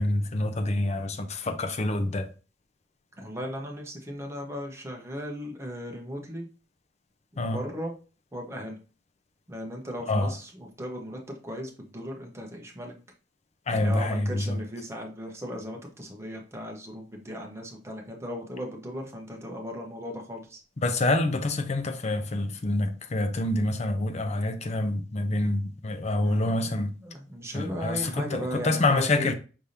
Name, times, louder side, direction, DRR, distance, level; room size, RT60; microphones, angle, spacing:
voice 1, 0.0-2.3 7.4-7.6 10.1-10.3 13.7-14.6 20.8-26.9 27.5-29.3, left 2 dB, 40° left, 0.6 m, -27 dB
voice 2, 3.2-6.5 7.3-7.9 8.3-8.8 9.5-12.9 13.7-20.6 26.2-26.6 27.0-29.3, equal, 15° right, 1.0 m, -37 dB
5.1 x 3.5 x 2.8 m
head